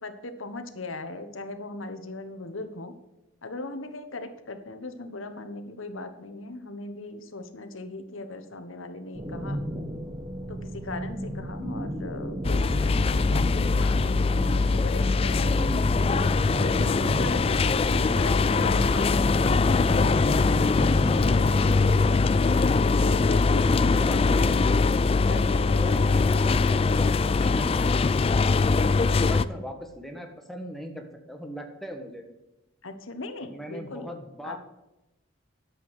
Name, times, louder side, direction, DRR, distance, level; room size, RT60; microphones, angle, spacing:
voice 1, 0.0-2.9 3.4-9.6 10.5-15.5 16.6-20.1 20.6-21.8 22.9-23.8 25.2-26.2 29.1-29.6 32.8-34.1 34.4-34.6, left 2 dB, 75° left, 9 dB, 1.3 m, -38 dB
sound 1, 9.1-22.0, equal, 20° right, 1.7 m, -34 dB
sound 2, 12.4-29.5, left 4 dB, 30° left, 0.3 m, -22 dB
voice 2, 18.2-18.5 23.9-24.6 25.8-28.3 29.1-32.2 33.5-34.6, equal, ahead, 4 dB, 1.3 m, -38 dB
10.5 x 7.9 x 6.3 m, 0.97 s
head